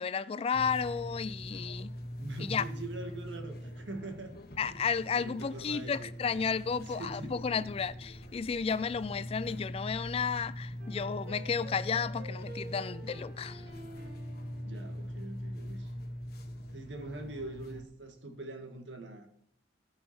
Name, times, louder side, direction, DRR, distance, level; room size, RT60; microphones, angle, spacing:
voice 1, 0.0-1.9 2.5-2.6 4.6-13.6, left 6 dB, 35° left, 0.3 m, -33 dB
sound 1, 0.5-17.8, equal, 55° left, 1.2 m, -42 dB
voice 2, 2.2-4.7 5.2-6.3 6.9-7.6 14.6-15.9 16.7-19.3, right 2 dB, 85° right, 1.7 m, -43 dB
sound 2, 10.8-15.4, right 1 dB, 65° right, 2.5 m, -49 dB
14.0 x 5.7 x 4.4 m
head